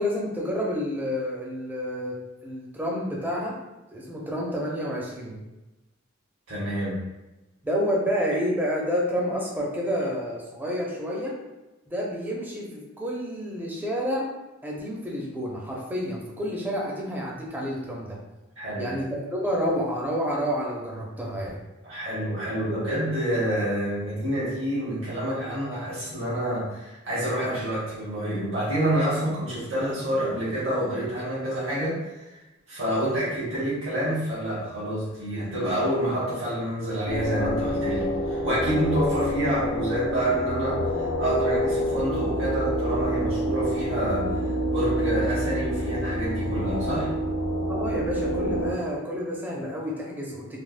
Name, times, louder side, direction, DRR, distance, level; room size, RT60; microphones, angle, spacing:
voice 1, 0.0-3.6 3.9-5.4 7.6-11.4 11.9-14.3 14.6-18.2 18.8-21.6 47.7-50.6, equal, 10° right, -3 dB, 0.4 m, -29 dB
voice 2, 6.5-7.0 18.6-18.9 21.8-32.4 32.7-47.1, right 1 dB, 70° right, -10 dB, 1.2 m, -28 dB
sound 1, 37.1-48.7, equal, 85° left, 0.5 m, -27 dB
3.3 x 2.0 x 2.4 m, 1.0 s
head